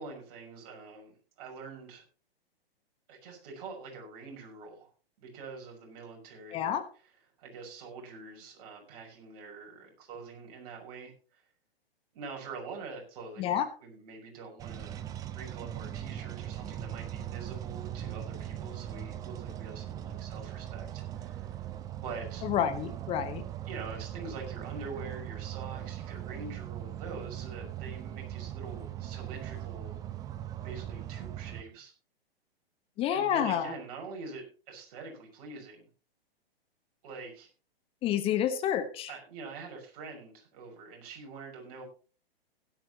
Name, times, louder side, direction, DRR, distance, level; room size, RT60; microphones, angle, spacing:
voice 1, 0.0-2.0 3.1-4.9 5.2-11.4 12.1-15.0 15.3-21.6 21.9-22.4 23.6-30.0 30.6-31.9 33.1-35.9 37.0-37.5 39.1-41.8, right 4 dB, 40° right, 1 dB, 6.1 m, -45 dB
voice 2, 6.5-6.8 13.4-13.6 22.5-23.4 33.0-33.7 38.0-39.1, left 9 dB, 20° left, 10 dB, 0.9 m, -29 dB
sound 1, 14.6-31.6, right 11 dB, 10° right, 0.6 m, -40 dB
16.5 x 11.5 x 3.0 m, 0.36 s
figure-of-eight pair, 115°, 30 cm